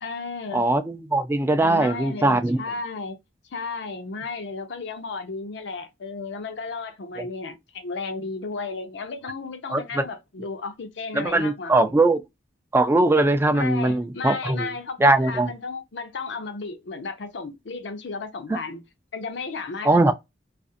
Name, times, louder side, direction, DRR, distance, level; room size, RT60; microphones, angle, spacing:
voice 1, 0.0-0.6 1.6-3.2 3.5-12.0 13.5-18.8 19.1-20.1, left 4 dB, 70° left, 0.6 m, -34 dB
voice 2, 0.5-2.6 7.2-7.3 9.7-10.0 11.1-12.2 12.7-14.7 15.0-15.5 18.5-18.6 19.8-20.1, right 2 dB, 15° right, 0.3 m, -20 dB
2.5 x 2.1 x 2.5 m
head